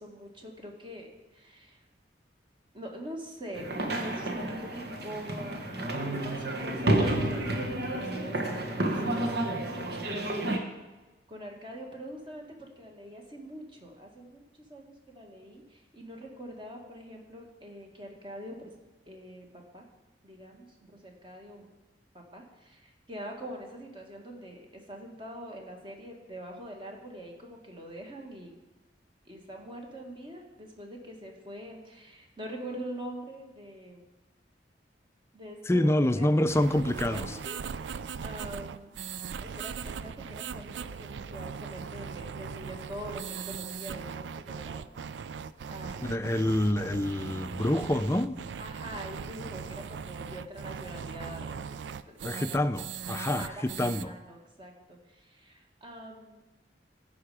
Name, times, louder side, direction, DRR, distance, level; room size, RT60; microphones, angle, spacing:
voice 1, 0.0-1.9 2.7-10.2 11.3-18.7 19.1-19.9 20.2-21.7 22.1-28.5 29.3-34.1 35.3-38.9 39.4-44.8 45.7-46.0 48.6-51.8 52.2-52.5 53.1-56.4, equal, 30° right, 1.8 m, -44 dB
sound 1, 3.5-10.6, right 1 dB, 65° right, 1.3 m, -30 dB
voice 2, 35.7-37.3 46.0-48.4 52.2-54.1, left 1 dB, 15° left, 0.4 m, -27 dB
sound 2, 36.5-54.0, right 6 dB, 85° right, 0.4 m, -39 dB
14.5 x 5.7 x 4.9 m
head